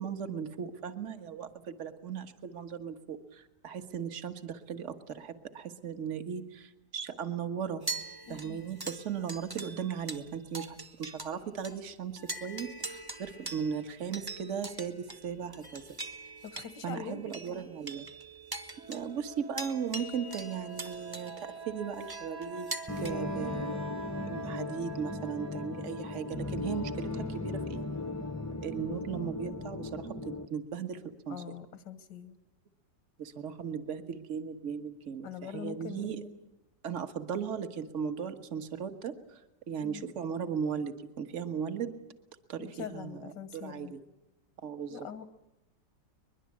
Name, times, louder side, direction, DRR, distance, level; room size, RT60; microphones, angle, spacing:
voice 1, 0.0-7.8 8.3-15.8 16.8-18.1 18.9-22.7 23.0-23.8 24.3-27.9 28.6-31.4 33.2-36.5 36.8-39.4 39.7-42.0 42.5-44.0 44.6-45.0, right 7 dB, 45° right, 7 dB, 1.7 m, -37 dB
sound 1, 7.8-11.4 11.6-11.8 12.2-23.1, right 2 dB, 15° right, 1.1 m, -43 dB
voice 2, 8.3-8.6 16.4-17.2 23.4-23.7 31.3-32.4 35.2-36.2 39.8-40.0 42.6-43.9 44.9-45.3, left 8 dB, 90° left, 10 dB, 1.9 m, -43 dB
sound 2, 18.7-28.4, right 5 dB, 70° right, 2.8 m, -46 dB
sound 3, 22.9-30.5, left 2 dB, 15° left, 0.5 m, -37 dB
23.0 x 22.0 x 8.5 m, 0.94 s
omnidirectional pair, 1.9 m